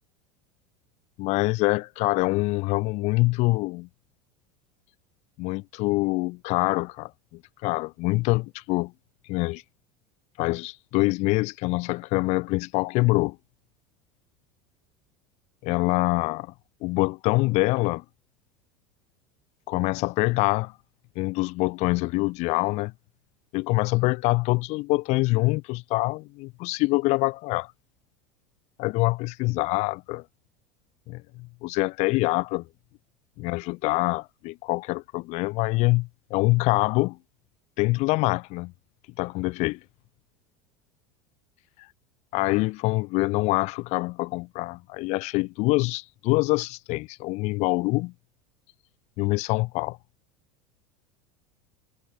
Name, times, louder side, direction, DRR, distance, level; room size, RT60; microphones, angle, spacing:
voice 1, 1.2-3.9 5.4-8.9 9.3-9.6 10.4-13.4 15.6-16.5 16.8-18.0 19.7-20.7 21.1-22.9 23.5-27.7 28.8-30.2 31.1-32.7 33.4-37.2 37.8-38.7 39.2-39.8 42.3-48.1 49.2-50.0, left 23 dB, 60° left, 3.3 m, -25 dB
supercardioid pair, 115°, 13 cm